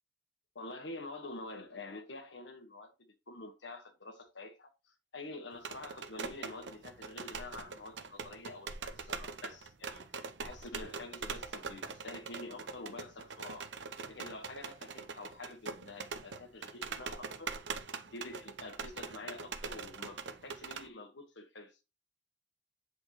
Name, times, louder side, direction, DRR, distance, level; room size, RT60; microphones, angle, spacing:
voice 1, 0.5-2.9 3.3-4.7 5.1-13.7 14.1-17.8 18.1-21.8, left 2 dB, 75° left, 1.4 m, -47 dB
sound 1, 5.5-20.9, right 5 dB, 75° right, 0.7 m, -43 dB
8.0 x 4.6 x 3.0 m
head